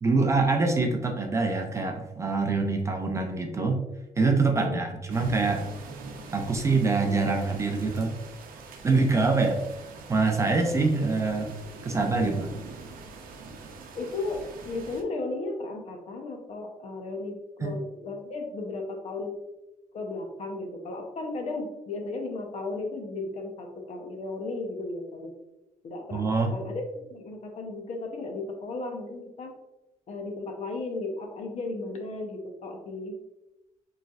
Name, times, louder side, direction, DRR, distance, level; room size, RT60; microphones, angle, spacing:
voice 1, 0.0-3.8 4.2-5.7 6.3-8.2 8.8-9.6 10.1-11.5 11.8-12.5 17.6-17.7 26.1-26.5, right 3 dB, 20° right, 3 dB, 0.4 m, -25 dB
sound 1, 5.1-15.0, right 4 dB, 90° right, 0.6 m, -43 dB
voice 2, 13.9-19.4 19.9-25.3 25.8-26.7 27.1-29.5 30.1-33.2, left 2 dB, 50° left, 3 dB, 0.7 m, -35 dB
5.0 x 3.2 x 2.4 m, 0.94 s
cardioid pair, 170°, 14 cm